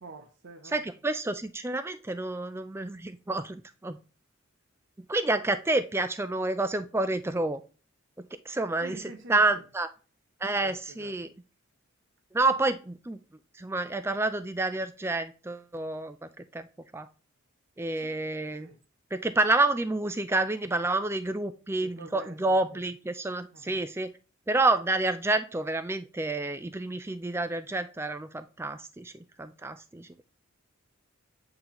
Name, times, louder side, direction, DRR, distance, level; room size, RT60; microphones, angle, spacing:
voice 1, 0.0-0.9 8.8-9.6 10.6-11.2 18.0-18.2 18.6-18.8 21.8-22.8 23.5-23.8, right 2 dB, 55° right, 0.6 m, -47 dB
voice 2, 0.6-4.0 5.1-7.6 8.5-9.0 9.3-9.9 10.4-11.3 12.3-13.2 13.6-16.7 16.9-17.1 17.8-18.7 19.1-24.1 24.5-30.2, right 2 dB, 10° right, 0.3 m, -29 dB
8.4 x 3.8 x 2.9 m
head